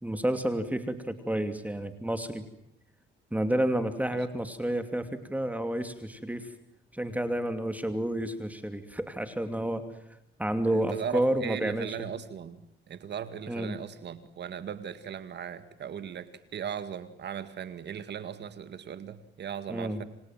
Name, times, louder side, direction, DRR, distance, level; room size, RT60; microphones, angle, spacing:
voice 1, 0.0-2.4 3.3-6.5 6.9-9.8 10.4-12.0 13.5-13.7 19.7-20.0, right 1 dB, 5° right, 8 dB, 2.7 m, -30 dB
voice 2, 10.7-20.0, right 8 dB, 60° right, 12 dB, 2.0 m, -38 dB
29.0 x 26.0 x 7.6 m, 0.80 s
cardioid pair, 90°, 20 cm